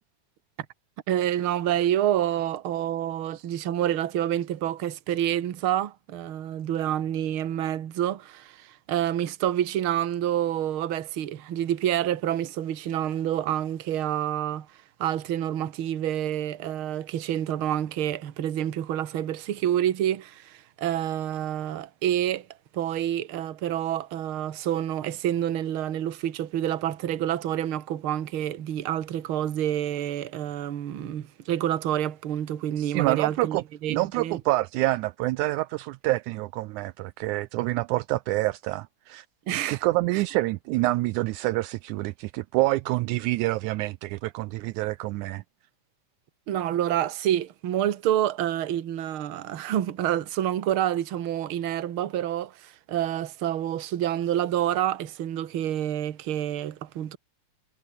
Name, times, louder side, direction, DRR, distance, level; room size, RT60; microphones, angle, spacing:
voice 1, 1.1-14.7 15.0-22.5 22.7-34.4 39.5-39.8 40.1-40.2 46.5-57.2, right 11 dB, 50° right, 1.9 m, -28 dB
voice 2, 32.8-33.6 33.9-39.3 39.7-45.4, right 19 dB, 80° right, 1.9 m, -27 dB
omnidirectional pair, 3.6 m